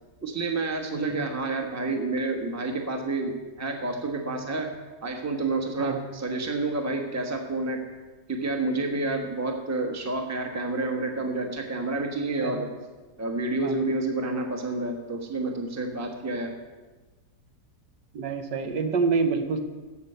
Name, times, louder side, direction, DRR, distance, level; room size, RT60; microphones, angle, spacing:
voice 1, 0.2-4.7 5.0-7.8 8.3-12.7 13.2-16.5, right 2 dB, 10° right, 3 dB, 0.9 m, -29 dB
voice 2, 18.1-19.6, right 4 dB, 80° right, 6 dB, 1.6 m, -27 dB
14.5 x 5.7 x 6.7 m, 1.2 s
omnidirectional pair, 1.8 m